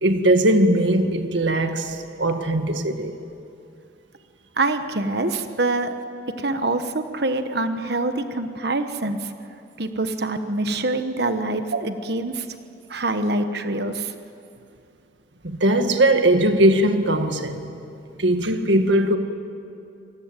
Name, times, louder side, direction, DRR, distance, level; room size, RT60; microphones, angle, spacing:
voice 1, 0.0-3.2 11.7-11.8 15.4-17.7 18.2-19.2, right 1 dB, 85° right, 1.9 m, -20 dB
voice 2, 4.6-5.9 6.4-9.3 9.8-12.5 12.9-14.1, right 2 dB, 60° right, 1.2 m, -25 dB
27.5 x 20.0 x 9.1 m
head